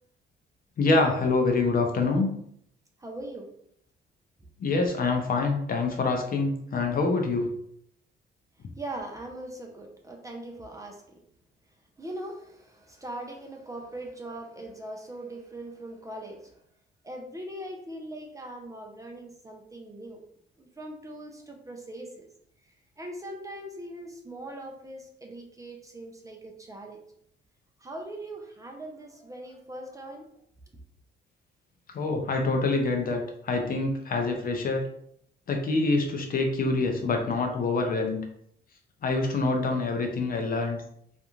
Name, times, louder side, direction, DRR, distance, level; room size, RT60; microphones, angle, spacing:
voice 1, 0.8-2.3 4.6-7.5 31.9-34.8 35.5-38.2 39.0-40.8, left 3 dB, 45° left, 3 dB, 0.6 m, -26 dB
voice 2, 3.0-3.5 8.8-11.0 12.0-16.5 17.0-20.2 20.6-22.3 23.0-27.0 27.8-30.2, right 1 dB, 15° right, 1 dB, 0.5 m, -40 dB
2.5 x 2.2 x 3.0 m, 0.68 s
cardioid pair, 90°, 20 cm